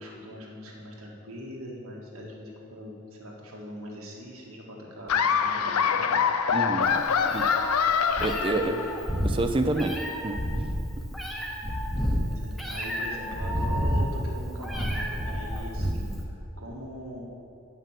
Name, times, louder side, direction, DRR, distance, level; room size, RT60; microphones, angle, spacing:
voice 1, 0.0-6.3 8.4-8.8 12.2-17.2, equal, 70° right, -2 dB, 1.8 m, -41 dB
Laughter, 5.1-9.1, left 6 dB, 85° left, 0.5 m, -25 dB
voice 2, 6.5-7.5 8.2-8.7 9.2-10.4, right 2 dB, 25° right, 6 dB, 0.4 m, -28 dB
Meow, 6.9-16.2, equal, ahead, 0.9 m, -30 dB
9.5 x 5.7 x 7.4 m, 2.9 s
head